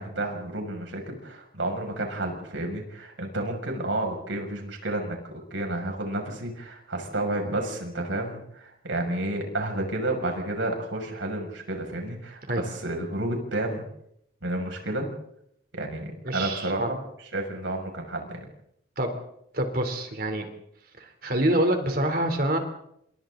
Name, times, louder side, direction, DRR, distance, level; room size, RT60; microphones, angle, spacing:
voice 1, 0.0-13.8 14.4-15.1 15.7-17.0 17.3-18.4, right 1 dB, 90° right, 2 dB, 6.5 m, -31 dB
voice 2, 16.3-16.9 19.0-19.1 19.5-20.4 21.0-22.6, right 1 dB, 50° right, 5 dB, 3.5 m, -26 dB
29.5 x 27.0 x 4.0 m, 0.75 s
head